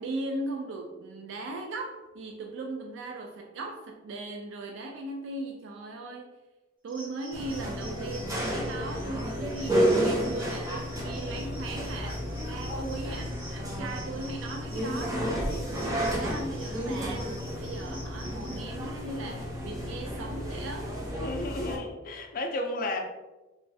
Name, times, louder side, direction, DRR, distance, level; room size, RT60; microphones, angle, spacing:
voice 1, 0.0-6.4 6.8-12.2 12.4-17.3 17.6-21.0, right 2 dB, 70° right, 3 dB, 0.3 m, -38 dB
sound 1, 6.9-18.6, equal, 50° right, 1.0 m, -49 dB
sound 2, 7.3-21.8, equal, 20° right, 0.6 m, -31 dB
voice 2, 21.2-23.0, left 2 dB, 45° left, 3 dB, 0.4 m, -32 dB
3.0 x 2.3 x 2.6 m, 1.1 s
head